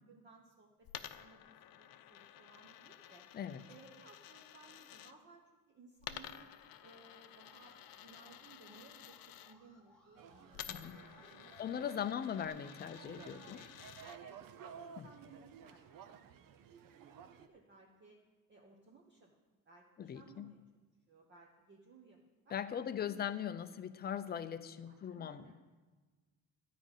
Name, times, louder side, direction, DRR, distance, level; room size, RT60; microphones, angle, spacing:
voice 1, 0.1-3.3 3.7-6.5 6.8-11.0 11.3-12.0 12.3-12.7 14.2-18.2 18.5-19.4 19.6-20.6 21.1-23.4 23.7-23.8 24.8-25.5, right 4 dB, 30° right, -1 dB, 1.0 m, -61 dB
Coin (dropping), 0.8-5.1 6.0-9.5 10.5-14.2, left 11 dB, 70° left, 0.7 m, -52 dB
voice 2, 3.3-3.6 10.7-11.0 11.6-13.6 15.0-15.1 20.0-20.5 22.5-25.5, left 9 dB, 30° left, 11 dB, 0.4 m, -40 dB
Alarm, 7.3-12.5, left 2 dB, 5° left, 1.5 m, -66 dB
sound 1, 10.2-17.5, right 7 dB, 65° right, 0.7 m, -55 dB
13.0 x 5.1 x 8.9 m, 1.3 s
cardioid pair, 175°, 36 cm